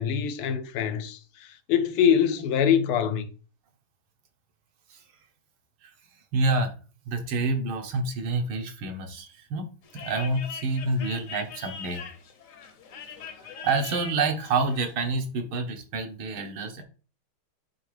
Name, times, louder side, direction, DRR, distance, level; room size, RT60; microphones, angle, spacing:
voice 1, 0.0-3.3, left 8 dB, 80° left, 1.6 m, -24 dB
voice 2, 6.3-6.7 7.1-9.7 9.9-12.0 13.4-16.8, right 3 dB, 70° right, 2.0 m, -28 dB
sound 1, 9.8-14.9, left 6 dB, 55° left, 1.0 m, -42 dB
9.8 x 3.5 x 3.3 m
omnidirectional pair, 2.4 m